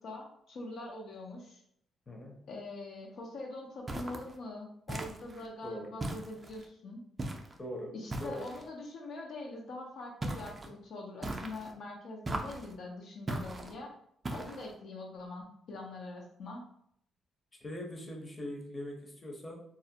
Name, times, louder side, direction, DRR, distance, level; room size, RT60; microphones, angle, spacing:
voice 1, 0.0-1.6 2.5-7.0 7.9-14.0 14.3-16.6, left 2 dB, 65° left, 0 dB, 0.5 m, -43 dB
voice 2, 2.1-2.4 5.6-5.9 7.6-8.5 17.6-19.6, left 1 dB, 25° left, 0 dB, 0.7 m, -41 dB
sound 1, 3.9-4.3 4.9-5.5 6.0-6.7 7.2-7.6 8.1-8.7 10.2-10.7 11.2-11.7 12.2-12.7 13.3-13.7 14.2-14.7, right 2 dB, 25° right, 0.4 m, -38 dB
2.4 x 2.0 x 2.7 m, 0.69 s
cardioid pair, 90°, 0 cm